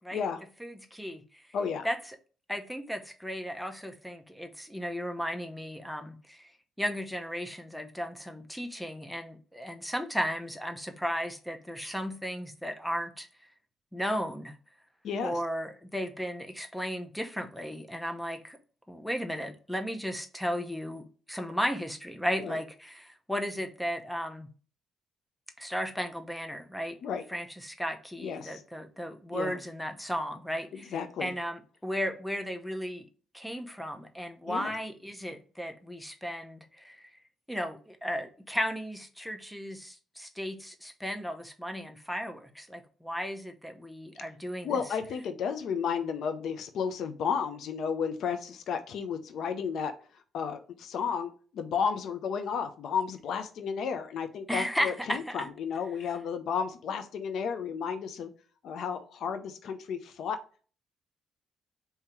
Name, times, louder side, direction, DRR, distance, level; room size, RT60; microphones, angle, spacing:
voice 1, 0.6-1.4 1.8-2.0 2.5-6.5 6.8-13.3 13.9-14.5 15.2-18.6 18.9-24.5 25.6-27.0 27.3-30.9 31.2-33.1 33.3-37.1 37.5-44.8 54.5-55.5, equal, 5° left, 0.7 m, -35 dB
voice 2, 1.5-1.9 15.0-15.4 22.4-22.6 27.0-27.2 28.2-28.6 29.3-29.6 30.9-31.3 34.5-34.7 44.6-49.9 50.3-58.3 58.6-60.4, left 6 dB, 70° left, 0.5 m, -33 dB
3.8 x 2.8 x 4.3 m
cardioid pair, 90°, 0 cm